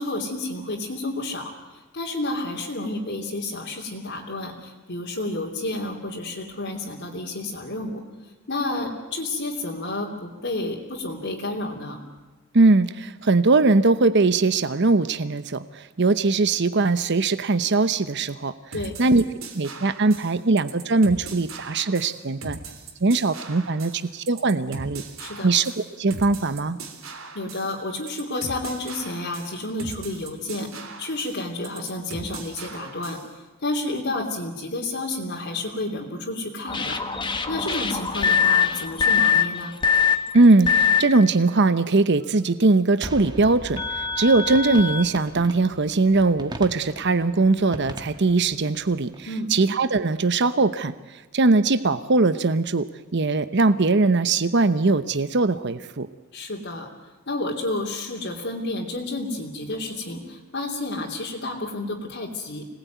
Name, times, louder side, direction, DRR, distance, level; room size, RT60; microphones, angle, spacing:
voice 1, 0.0-8.0 8.5-12.0 18.7-19.0 25.2-25.5 27.0-33.2 33.6-37.0 37.5-39.7 49.3-49.5 56.3-56.9 57.3-62.7, left 2 dB, 60° left, -2 dB, 3.1 m, -30 dB
voice 2, 12.5-18.5 19.0-19.2 19.5-22.6 23.0-25.0 25.4-25.7 26.0-26.8 40.3-50.9 51.3-52.9 53.1-56.1, right 3 dB, 60° right, 12 dB, 0.9 m, -20 dB
sound 1, 18.7-33.3, right 4 dB, 90° right, 3.3 m, -40 dB
sound 2, 36.7-41.0 42.2-42.3 43.8-45.0, left 7 dB, 25° left, 1.5 m, -22 dB
sound 3, 43.0-49.3, right 1 dB, 20° right, 1.6 m, -40 dB
26.0 x 19.5 x 9.3 m, 1.2 s
head